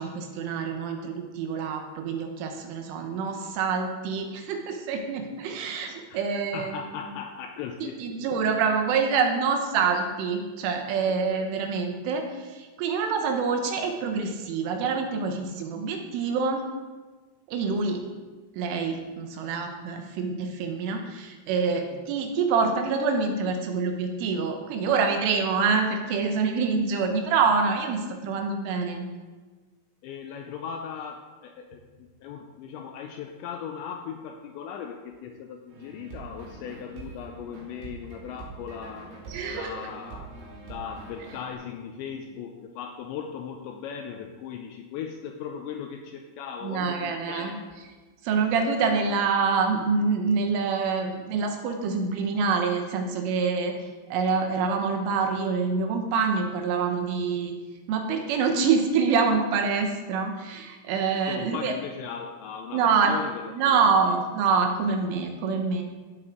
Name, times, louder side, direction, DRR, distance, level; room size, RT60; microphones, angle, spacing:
voice 1, 0.0-6.8 7.8-16.6 17.5-18.0 18.6-29.1 39.3-39.7 46.6-47.6 48.2-53.7 54.1-57.6 57.9-61.7 62.7-63.1 63.5-65.8, right 5 dB, 80° right, 4 dB, 3.5 m, -26 dB
voice 2, 6.5-8.2 11.3-11.4 30.0-39.1 39.5-40.3 40.6-47.6 61.3-63.8 64.0-64.2, left 7 dB, 90° left, 3 dB, 2.6 m, -38 dB
sound 1, 35.7-41.5, right 4 dB, 55° right, 3.7 m, -44 dB
15.5 x 8.0 x 3.8 m, 1.3 s
omnidirectional pair, 5.9 m